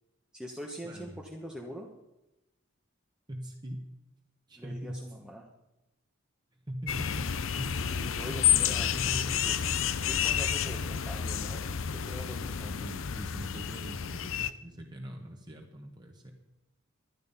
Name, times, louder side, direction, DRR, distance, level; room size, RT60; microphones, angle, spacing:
voice 1, 0.3-1.9 4.6-5.5 7.8-11.8 12.1-12.7, equal, 5° right, -1 dB, 1.1 m, -44 dB
voice 2, 0.8-1.2 3.3-3.9 4.5-5.0 6.7-8.2 8.7-9.4 12.4-16.3, equal, 20° right, 1 dB, 1.4 m, -42 dB
sound 1, 6.9-14.5, left 9 dB, 70° left, 0.6 m, -30 dB
12.0 x 11.0 x 5.5 m, 0.97 s
head